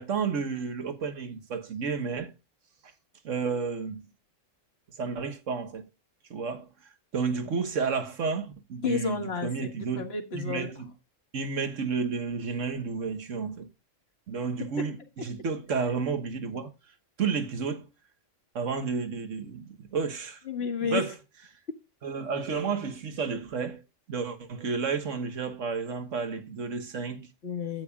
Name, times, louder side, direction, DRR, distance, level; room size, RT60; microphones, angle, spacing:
voice 1, 0.0-2.3 3.2-4.1 5.0-5.9 6.3-6.7 7.1-10.0 10.3-10.9 11.3-13.7 14.3-16.7 17.2-17.8 18.5-20.4 20.8-21.2 22.0-23.8 24.1-27.3, right 5 dB, 75° right, 1.6 m, -31 dB
voice 2, 8.8-9.5 9.9-10.7 20.5-21.0 27.4-27.8, left 6 dB, 55° left, 1.7 m, -30 dB
12.5 x 8.7 x 2.3 m
omnidirectional pair, 1.3 m